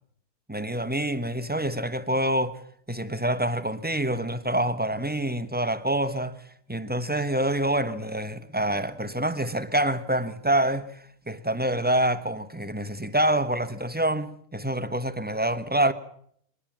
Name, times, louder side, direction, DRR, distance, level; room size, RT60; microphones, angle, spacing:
voice 1, 0.5-2.6 2.9-6.4 6.7-15.9, right 1 dB, 5° right, 0.9 m, -26 dB
22.5 x 19.5 x 7.4 m
omnidirectional pair, 1.6 m